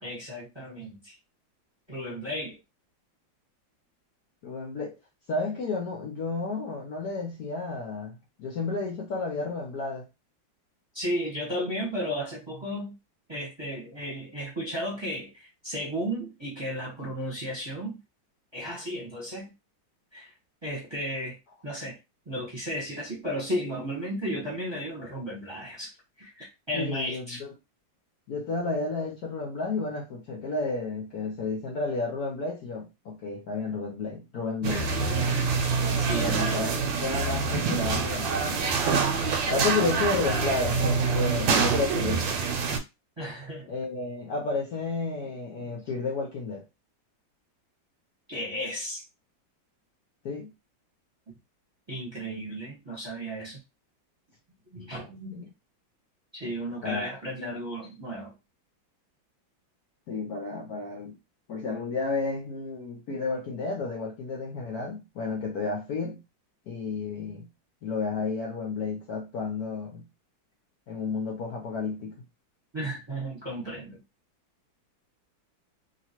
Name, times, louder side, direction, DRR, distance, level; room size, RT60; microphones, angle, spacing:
voice 1, 0.0-1.1 1.9-2.6 10.9-12.9 13.3-18.0 18.5-19.5 20.1-20.3 20.6-21.4 21.6-22.0 22.3-25.9 26.2-27.4 34.6-35.6 36.0-36.5 37.6-37.7 43.2-43.7 45.2-45.3 45.6-45.8 48.3-49.0 51.9-53.6 54.7-55.5 56.3-58.3 72.7-74.0, equal, 15° right, 1.0 m, -34 dB
voice 2, 4.4-5.0 5.3-10.1 26.7-27.5 28.3-34.9 36.2-38.6 39.4-42.7 43.7-46.6 50.2-50.5 55.3-55.5 56.8-57.1 60.1-61.2 61.5-66.2 66.7-67.5 67.8-70.1 70.9-72.2, left 3 dB, 65° left, 1.0 m, -32 dB
sound 1, 34.6-42.8, right 5 dB, 80° right, 1.3 m, -26 dB
2.9 x 2.8 x 2.9 m
omnidirectional pair, 2.1 m